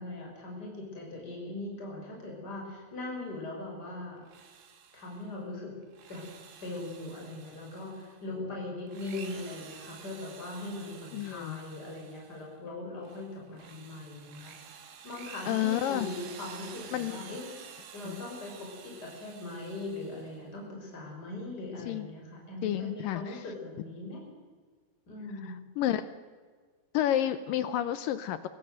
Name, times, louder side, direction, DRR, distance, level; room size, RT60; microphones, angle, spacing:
voice 1, 0.0-4.2 4.9-5.7 6.1-6.2 6.6-14.5 15.0-17.4 17.9-24.2 25.1-25.5, left 2 dB, 25° left, -1 dB, 6.0 m, -40 dB
Drill, 4.2-5.3 5.8-8.2 8.8-12.5 13.0-20.5, right 7 dB, 70° right, 3.9 m, -50 dB
voice 2, 11.1-11.6 15.5-16.1 16.9-17.3 18.0-18.2 21.8-22.1 22.6-23.4 25.4-26.0 26.9-28.5, left 12 dB, 80° left, 13 dB, 2.1 m, -30 dB
24.0 x 16.5 x 7.9 m, 1.5 s
omnidirectional pair, 4.8 m